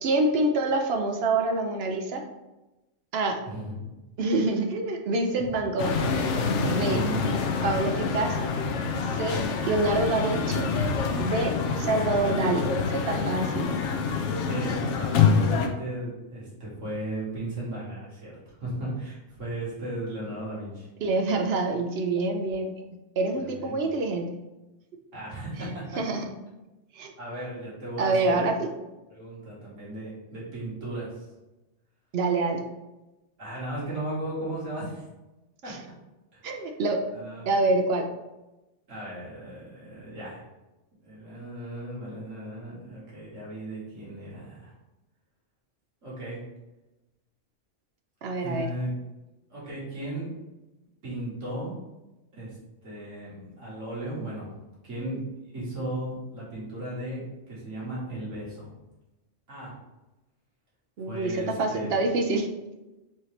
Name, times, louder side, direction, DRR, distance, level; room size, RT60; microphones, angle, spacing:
voice 1, 0.0-2.2 3.1-3.4 4.2-6.0 6.7-7.0 7.6-8.5 9.1-10.7 11.2-13.7 21.0-22.7 23.2-24.3 26.0-26.2 26.9-27.1 28.0-28.7 32.1-32.6 35.7-35.8 36.4-37.0 37.5-38.1 48.2-48.7 61.0-62.5, right 2 dB, 60° right, 3 dB, 0.8 m, -26 dB
voice 2, 3.5-3.9 6.8-7.3 14.4-18.3 18.6-20.9 23.3-23.9 25.1-26.0 27.2-28.5 29.1-31.2 33.4-35.0 35.6-35.7 36.3-36.5 37.1-37.6 38.9-40.4 41.0-44.7 46.0-46.4 48.4-48.9 49.5-50.3 51.0-51.8 52.3-52.6 52.8-54.5 54.8-55.2 55.5-57.2 57.5-58.7 59.5-59.7 61.1-62.0, right 1 dB, 85° right, -8 dB, 2.0 m, -36 dB
sound 1, 5.8-15.7, left 5 dB, 75° left, 0.9 m, -26 dB
4.8 x 2.9 x 3.2 m, 1.0 s
omnidirectional pair, 1.3 m